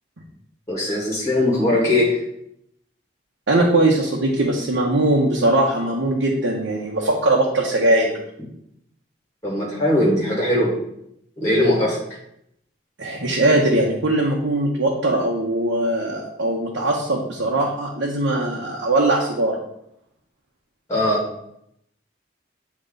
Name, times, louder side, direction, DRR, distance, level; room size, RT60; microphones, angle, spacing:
voice 1, 0.7-2.2 9.4-10.8 11.4-12.0 20.9-21.2, left 1 dB, 15° left, -5 dB, 1.9 m, -20 dB
voice 2, 3.5-8.2 13.0-19.6, right 2 dB, 90° right, -3 dB, 0.9 m, -20 dB
8.1 x 3.0 x 3.8 m, 0.75 s
head